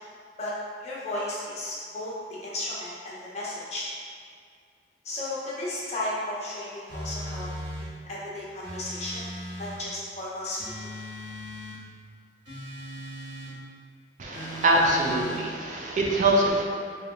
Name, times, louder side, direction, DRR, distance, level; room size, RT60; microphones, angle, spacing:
voice 1, 0.8-2.1 2.4-3.9 5.0-7.5 7.8-9.2 9.6-10.9, left 1 dB, 40° left, -7 dB, 0.9 m, -34 dB
sound 1, 6.9-7.9 8.6-9.8 10.6-11.8 12.5-13.5 14.3-15.4, equal, 80° right, 1.3 m, -38 dB
voice 2, 14.2-16.6, right 1 dB, 45° right, -1 dB, 0.4 m, -23 dB
3.3 x 2.8 x 3.8 m, 2.2 s
head